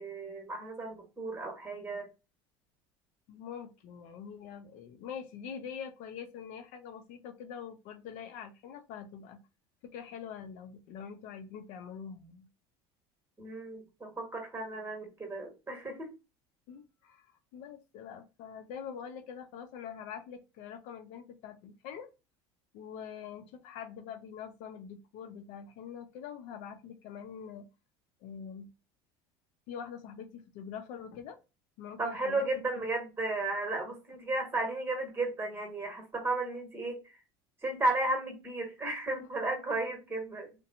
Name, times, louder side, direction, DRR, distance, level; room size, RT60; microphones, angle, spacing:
voice 1, 0.0-2.1 13.4-16.1 32.0-37.0 37.6-40.5, right 2 dB, 15° right, 3 dB, 1.4 m, -34 dB
voice 2, 3.3-9.4 9.8-12.5 16.7-17.3 17.5-22.1 22.7-27.6 28.2-28.7 29.7-31.4 31.8-32.4 32.8-32.9 39.2-39.3, left 7 dB, 65° left, 7 dB, 0.7 m, -44 dB
2.8 x 2.2 x 2.6 m, 0.28 s
supercardioid pair, 95°, 13 cm